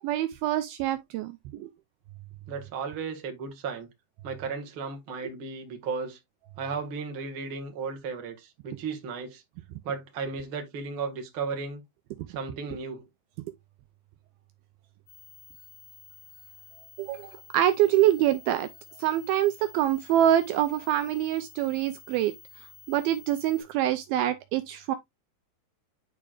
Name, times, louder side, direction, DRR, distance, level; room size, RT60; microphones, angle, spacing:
voice 1, 0.0-1.7 17.0-18.7 19.0-25.0, right 12 dB, 80° right, 2.3 m, -25 dB
voice 2, 2.5-3.9 4.2-6.2 6.6-9.4 9.8-11.8 12.3-13.1, right 5 dB, 45° right, 1.9 m, -35 dB
sound 1, 15.1-23.6, left 7 dB, 80° left, 5.4 m, -51 dB
11.0 x 4.7 x 2.5 m
omnidirectional pair, 4.7 m